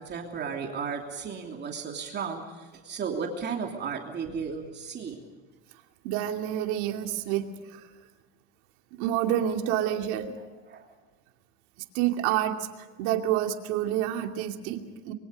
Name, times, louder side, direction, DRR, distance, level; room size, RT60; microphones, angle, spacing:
voice 1, 0.0-5.2 10.7-10.9, right 6 dB, 30° right, 2 dB, 3.0 m, -34 dB
voice 2, 6.0-7.9 9.0-10.3 11.9-12.7 13.0-15.1, right 11 dB, 65° right, 4 dB, 2.7 m, -28 dB
25.0 x 23.5 x 5.3 m, 1.3 s
supercardioid pair, 125°, 32 cm